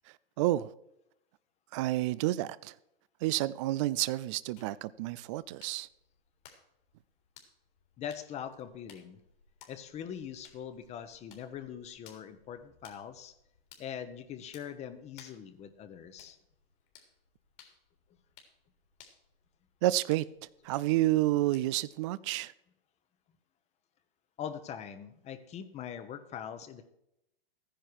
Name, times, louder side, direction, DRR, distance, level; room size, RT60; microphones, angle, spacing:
voice 1, 0.4-0.7 1.7-2.7 3.2-5.9 19.8-20.3 20.6-22.5, right 16 dB, 35° right, 0.4 m, -29 dB
sound 1, 4.6-22.0, left 7 dB, 60° left, 3.6 m, -61 dB
voice 2, 8.0-9.2 9.7-13.3 13.8-16.4 24.4-26.9, left 8 dB, 20° left, 1.1 m, -42 dB
14.0 x 10.0 x 4.7 m
hypercardioid pair, 125°, 30 cm